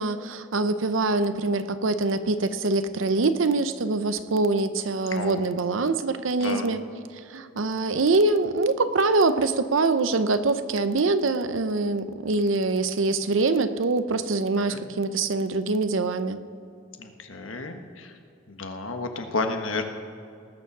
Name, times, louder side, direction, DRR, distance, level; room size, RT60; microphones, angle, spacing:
voice 1, 0.0-6.8 7.3-16.4, right 3 dB, 80° right, 11 dB, 0.7 m, -24 dB
voice 2, 6.4-6.8 14.7-14.8 17.0-18.1 18.5-19.8, left 3 dB, 85° left, 5 dB, 1.3 m, -31 dB
19.0 x 7.1 x 6.1 m, 2.5 s
head